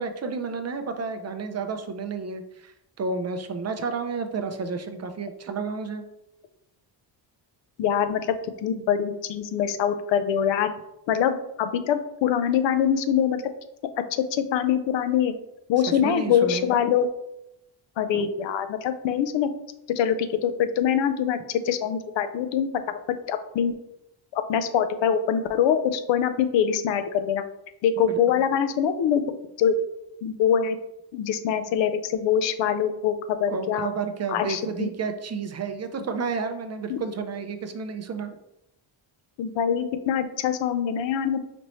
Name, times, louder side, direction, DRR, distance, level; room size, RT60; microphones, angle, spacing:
voice 1, 0.0-6.0 16.0-16.7 18.1-18.3 28.1-28.4 33.5-38.3, right 5 dB, 40° right, 7 dB, 0.4 m, -31 dB
voice 2, 7.8-8.2 8.6-10.7 11.1-13.4 14.3-15.3 15.7-17.1 18.0-19.5 20.0-23.0 23.3-23.8 24.3-27.4 27.8-29.2 29.6-29.8 30.2-30.8 31.1-33.9 34.3-34.9 36.9-37.0 39.4-41.4, left 8 dB, 80° left, 9 dB, 0.5 m, -24 dB
5.1 x 2.9 x 3.0 m, 0.83 s
cardioid pair, 125°, 44 cm